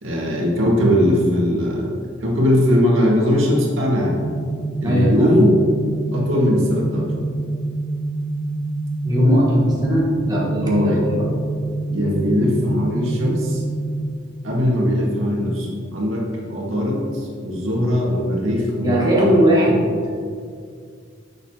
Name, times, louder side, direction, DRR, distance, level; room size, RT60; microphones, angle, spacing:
voice 1, 0.0-1.9 2.2-4.2 4.8-5.6 6.1-7.1 10.6-11.1 11.9-13.6 14.4-18.9, equal, 80° right, -3 dB, 1.9 m, -20 dB
sound 1, 4.0-14.0, right 2 dB, 75° left, 1.7 m, -26 dB
voice 2, 4.8-5.4 9.0-11.3 18.8-19.9, equal, 20° right, -5 dB, 1.5 m, -18 dB
11.0 x 6.9 x 2.9 m, 2.2 s
head